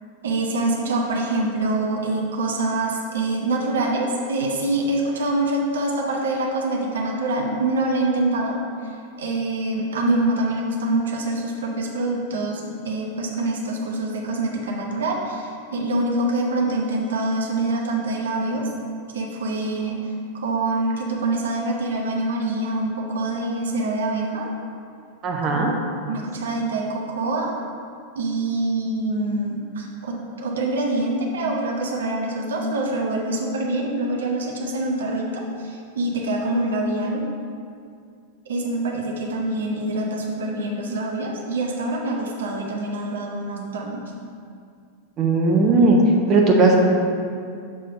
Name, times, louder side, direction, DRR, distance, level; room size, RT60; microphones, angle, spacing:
voice 1, 0.2-8.6 8.8-18.7 19.1-24.5 25.4-27.5 28.1-37.3 38.5-44.0, right 2 dB, 65° right, -1 dB, 0.8 m, -25 dB
voice 2, 25.2-25.7 45.2-46.0 46.3-46.8, right 3 dB, 30° right, 0 dB, 0.8 m, -17 dB
7.0 x 3.3 x 5.3 m, 2.3 s
figure-of-eight pair, 90°, 0 cm